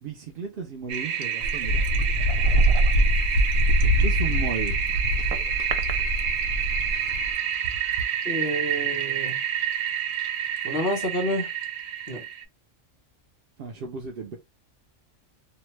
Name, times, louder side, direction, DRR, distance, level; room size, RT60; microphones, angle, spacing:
voice 1, 0.0-1.8 4.0-4.8 13.6-14.4, right 6 dB, 60° right, 0.6 m, -34 dB
Toilet flush, 0.9-12.4, right 8 dB, 80° right, 1.0 m, -28 dB
Wind, 1.4-7.3, equal, 80° left, 1.0 m, -23 dB
voice 2, 8.2-9.4 10.6-11.5 12.1-12.2, equal, 50° left, 1.3 m, -28 dB
2.7 x 2.2 x 3.0 m
omnidirectional pair, 1.4 m